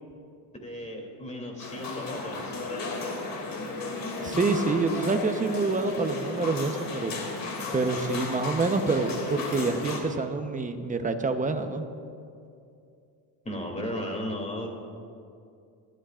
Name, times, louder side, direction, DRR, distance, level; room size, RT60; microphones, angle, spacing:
voice 1, 0.6-2.6 13.4-14.7, equal, 15° left, 1 dB, 2.9 m, -35 dB
sound 1, 1.6-10.0, left 3 dB, 50° left, 2.7 m, -34 dB
voice 2, 4.2-7.1 7.7-11.8, right 3 dB, 20° right, 7 dB, 0.9 m, -27 dB
24.5 x 13.0 x 2.5 m, 2.4 s
cardioid pair, 115°, 44 cm